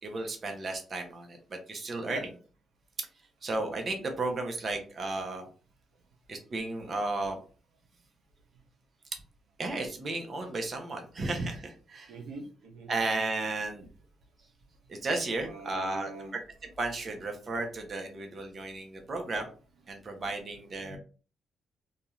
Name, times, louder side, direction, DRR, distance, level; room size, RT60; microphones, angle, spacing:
voice 1, 0.0-2.2 3.4-5.5 6.3-7.4 9.6-12.1 12.9-13.9 14.9-16.1 16.8-19.5 19.9-21.0, right 2 dB, 45° right, 3 dB, 0.8 m, -34 dB
voice 2, 12.1-12.9 15.4-16.4 19.9-20.4 20.8-21.0, right 2 dB, 85° right, 1 dB, 0.7 m, -44 dB
2.6 x 2.4 x 3.1 m, 0.37 s
cardioid pair, 70°, 0 cm